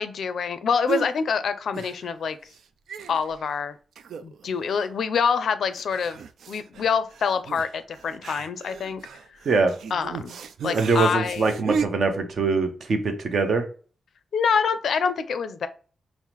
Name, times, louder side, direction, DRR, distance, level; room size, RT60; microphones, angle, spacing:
voice 1, 0.0-2.4 3.1-3.8 4.2-6.2 6.5-9.0 9.9-10.3 10.6-11.5 14.3-15.7, left 6 dB, 65° left, 12 dB, 0.4 m, -26 dB
sound 1, 0.9-1.2 1.7-2.3 2.5-2.6 2.9-3.5 4.0-4.5 4.8-4.9 5.8-11.9, right 6 dB, 85° right, 0.3 m, -34 dB
voice 2, 10.7-13.6, right 4 dB, 50° right, 5 dB, 0.7 m, -23 dB
5.4 x 2.0 x 3.0 m, 0.39 s
wide cardioid pair, 155°, 0 cm